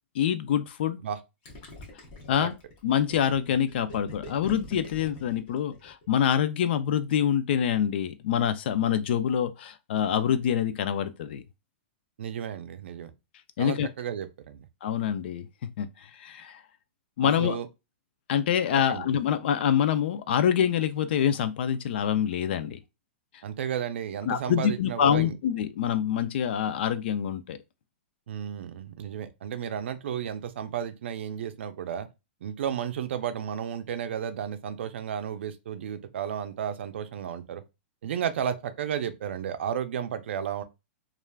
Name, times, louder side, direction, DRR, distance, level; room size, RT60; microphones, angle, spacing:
voice 1, 0.1-1.0 2.3-2.5 2.8-11.4 13.6-13.9 14.8-15.5 15.8-16.6 17.2-17.6 18.3-22.8 24.3-27.6, left 9 dB, 55° left, 0.4 m, -26 dB
Gurgling, 1.4-6.1, left 1 dB, 35° left, 0.9 m, -44 dB
voice 2, 12.2-13.1 13.6-14.7 17.2-17.7 18.9-19.1 23.4-25.4 28.3-32.1 32.4-37.6 38.0-40.6, right 8 dB, 70° right, 0.4 m, -33 dB
3.2 x 2.4 x 2.2 m
hypercardioid pair, 160°, 7 cm